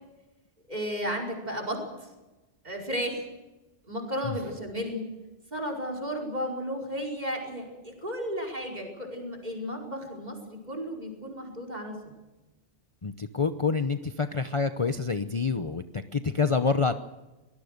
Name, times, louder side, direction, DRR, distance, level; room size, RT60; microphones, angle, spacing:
voice 1, 0.7-1.8 2.6-3.3 3.9-5.1 5.5-12.0, equal, 35° right, 3 dB, 5.2 m, -33 dB
voice 2, 13.0-16.9, left 4 dB, 30° left, 9 dB, 0.8 m, -27 dB
24.0 x 19.5 x 6.6 m, 1.1 s
omnidirectional pair, 1.2 m